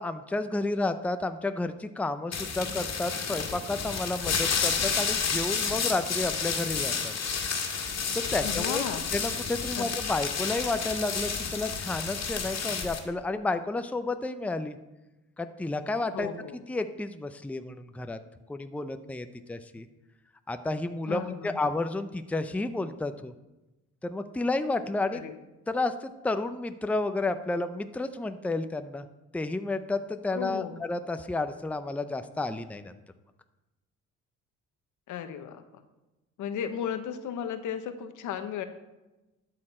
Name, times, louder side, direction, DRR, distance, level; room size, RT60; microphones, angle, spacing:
voice 1, 0.0-7.1 8.1-8.8 9.1-14.8 15.4-16.3 16.7-18.2 18.5-19.9 20.5-23.3 24.0-25.2 25.7-29.1 29.3-32.9, left 2 dB, 5° left, 9 dB, 0.5 m, -31 dB
sound 1, 2.3-13.0, left 6 dB, 60° left, 1.8 m, -30 dB
voice 2, 8.4-9.0 9.8-9.9 16.1-16.6 21.1-21.7 25.1-25.3 30.3-30.8 35.1-35.8 36.4-38.7, left 8 dB, 80° left, 9 dB, 1.0 m, -35 dB
12.0 x 6.6 x 4.3 m, 1.0 s
cardioid pair, 90°, 30 cm